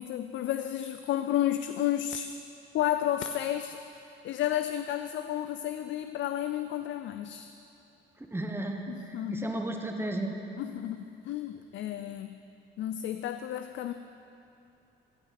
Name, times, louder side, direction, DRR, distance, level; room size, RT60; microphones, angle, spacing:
voice 1, 0.0-2.3 2.7-3.8 4.2-7.5 8.9-9.5 10.6-12.4 12.8-13.9, left 12 dB, 70° left, 9 dB, 0.4 m, -32 dB
voice 2, 8.2-10.4, right 1 dB, 10° right, 3 dB, 1.1 m, -34 dB
16.0 x 5.6 x 5.8 m, 2.8 s
cardioid pair, 90°, 20 cm